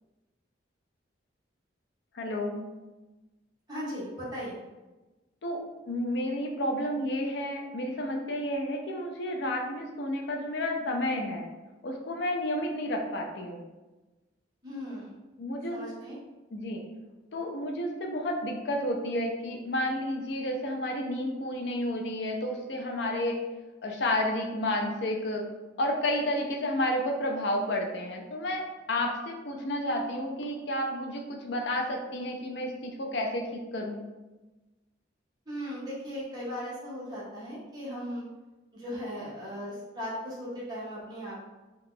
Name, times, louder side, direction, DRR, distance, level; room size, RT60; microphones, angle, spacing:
voice 1, 2.2-2.6 5.4-5.6 5.9-11.5 11.8-13.6 15.4-15.8 16.5-16.8 17.3-23.4 23.8-25.4 25.8-34.0, left 1 dB, 65° left, 2 dB, 0.5 m, -31 dB
voice 2, 3.7-4.6 14.6-15.2 15.7-16.2 35.5-38.2 38.7-41.4, equal, 20° right, -8 dB, 1.0 m, -37 dB
2.8 x 2.3 x 3.7 m, 1.1 s
head